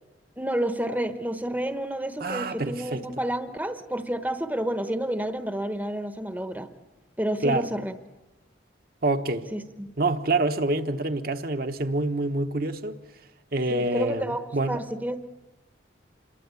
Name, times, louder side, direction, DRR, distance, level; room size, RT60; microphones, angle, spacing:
voice 1, 0.4-6.7 7.2-7.9 9.5-9.9 13.7-15.2, right 1 dB, 10° right, 1.0 m, -30 dB
voice 2, 2.2-3.1 7.4-7.7 9.0-9.5 10.0-13.0 13.5-14.8, right 2 dB, 50° right, 1.1 m, -26 dB
27.5 x 22.5 x 8.3 m
head